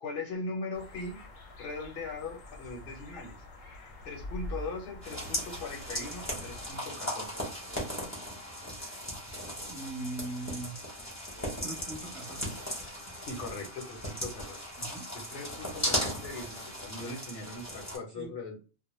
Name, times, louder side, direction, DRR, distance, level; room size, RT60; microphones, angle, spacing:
voice 1, 0.0-1.2 1.6-3.4 4.0-7.4 13.3-14.7 15.1-18.6, left 3 dB, 55° left, 0 dB, 0.8 m, -40 dB
sound 1, 0.7-6.7, left 2 dB, 80° left, 1.0 m, -45 dB
sound 2, 5.0-18.0, equal, 15° left, 0.7 m, -37 dB
voice 2, 9.7-10.8 11.6-12.6 14.8-15.1 18.1-18.3, right 2 dB, 30° right, -4 dB, 0.7 m, -40 dB
2.1 x 2.1 x 3.0 m, 0.33 s
omnidirectional pair, 1.3 m